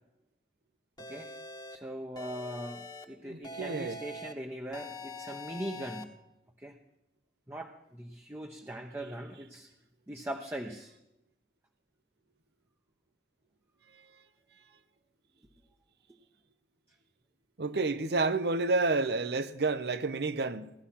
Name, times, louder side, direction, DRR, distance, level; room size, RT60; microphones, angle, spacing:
sound 1, 1.0-1.8 2.2-3.0 3.4-4.3 4.7-6.0, left 2 dB, 25° left, 1.2 m, -44 dB
voice 1, 1.7-6.1 6.6-6.8 7.5-9.7 10.1-10.9, right 1 dB, 15° right, 0.8 m, -40 dB
voice 2, 3.3-4.0 17.6-20.7, right 3 dB, 65° right, 0.8 m, -30 dB
16.5 x 11.5 x 5.8 m
head